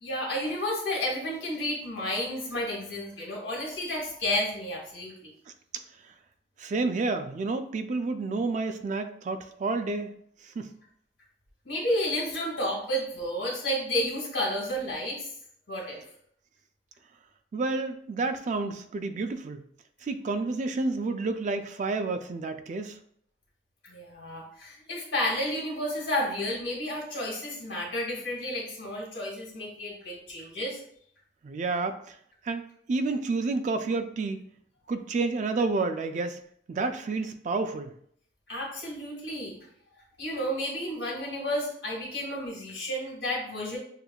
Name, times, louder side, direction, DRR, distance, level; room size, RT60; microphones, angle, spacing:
voice 1, 0.0-5.3 11.6-15.3 15.7-16.0 23.8-30.8 38.5-39.6 40.2-43.8, left 1 dB, 80° left, -1 dB, 1.6 m, -31 dB
voice 2, 6.6-10.2 10.6-10.7 17.5-19.6 20.0-23.0 31.4-32.2 32.4-32.6 32.9-34.4 34.9-36.4 36.7-37.9, right 3 dB, 45° right, 9 dB, 0.3 m, -30 dB
6.6 x 2.3 x 2.3 m, 0.65 s
head